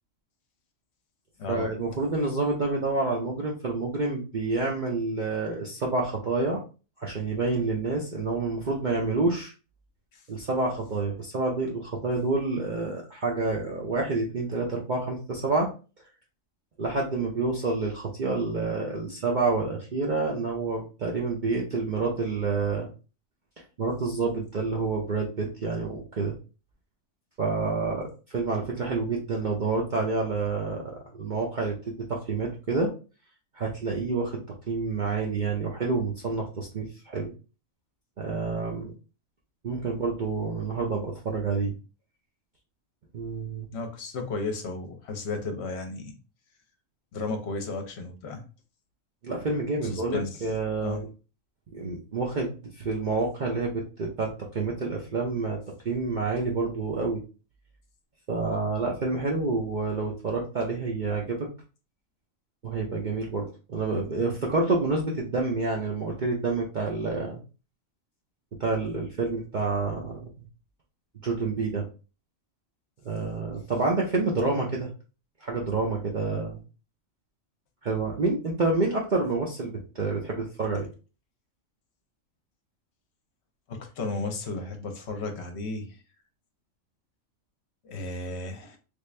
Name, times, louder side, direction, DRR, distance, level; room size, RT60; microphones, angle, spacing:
voice 1, 1.5-6.6 7.0-9.5 10.3-15.7 16.8-22.9 23.8-26.4 27.4-32.9 33.5-37.3 38.2-38.9 39.6-41.7 43.1-43.7 49.2-51.1 51.7-55.6 55.8-57.2 58.3-61.5 62.6-67.4 68.6-70.3 71.2-71.8 73.0-74.9 75.4-76.6 77.8-80.9, right 3 dB, 50° right, -2 dB, 0.6 m, -28 dB
voice 2, 43.7-46.2 47.1-48.4 49.8-50.5 50.8-51.0 83.7-86.0 87.8-88.8, left 3 dB, 60° left, 4 dB, 0.9 m, -34 dB
3.5 x 2.4 x 3.2 m, 0.34 s
omnidirectional pair, 1.4 m